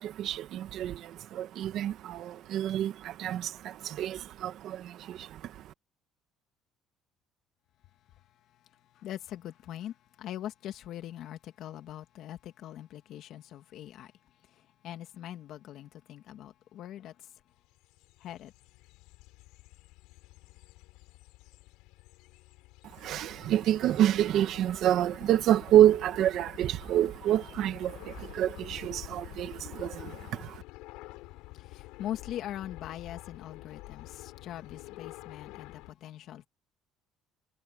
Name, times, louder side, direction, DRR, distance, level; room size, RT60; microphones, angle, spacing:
voice 1, 0.0-5.7 22.9-30.6, right 12 dB, 55° right, 2.1 m, -28 dB
voice 2, 9.0-14.1 14.8-17.1 18.2-18.5 31.6-36.5, left 12 dB, 55° left, 2.5 m, -42 dB
sound 1, 17.6-35.9, left 21 dB, 85° left, 7.1 m, -48 dB
cardioid pair, 155°, 0 cm